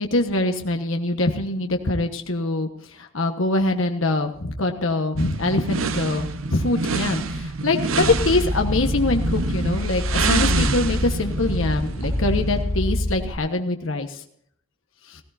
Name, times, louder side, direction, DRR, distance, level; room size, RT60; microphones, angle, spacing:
voice 1, 0.0-2.7 3.0-14.1, left 2 dB, 70° left, 4 dB, 1.3 m, -24 dB
sound 1, 5.2-12.7, right 3 dB, 75° right, 0.9 m, -27 dB
sound 2, 8.0-13.4, left 1 dB, 15° left, 3.2 m, -26 dB
18.0 x 16.0 x 2.7 m, 0.67 s
head